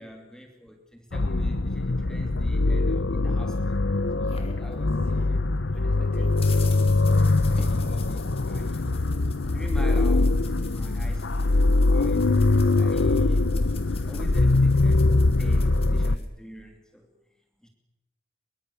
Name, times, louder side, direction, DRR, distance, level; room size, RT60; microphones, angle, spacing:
voice 1, 0.0-3.8 4.2-7.0 7.5-9.0 9.5-12.5 12.8-13.6 14.0-17.1 17.6-17.7, equal, 5° left, 3 dB, 2.8 m, -45 dB
sound 1, 1.1-16.2, left 2 dB, 85° left, 0.9 m, -22 dB
sound 2, 3.5-5.4 5.7-16.3, left 4 dB, 35° left, 3.7 m, -46 dB
24.0 x 23.5 x 7.1 m, 0.94 s
head